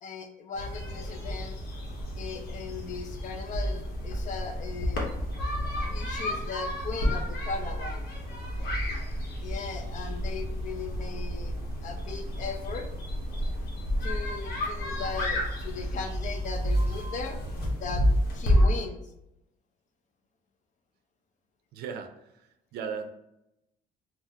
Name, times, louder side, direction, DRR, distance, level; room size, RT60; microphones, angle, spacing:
voice 1, 0.0-1.6 2.1-5.1 5.8-8.0 9.4-11.6 11.8-12.9 14.0-17.4 17.8-19.0, left 5 dB, 45° left, 6 dB, 0.4 m, -38 dB
sound 1, 0.5-18.7, equal, 65° left, 0.9 m, -30 dB
voice 2, 21.7-23.1, right 6 dB, 75° right, 7 dB, 0.4 m, -37 dB
3.6 x 2.0 x 2.7 m, 0.86 s
cardioid pair, 110°, 17 cm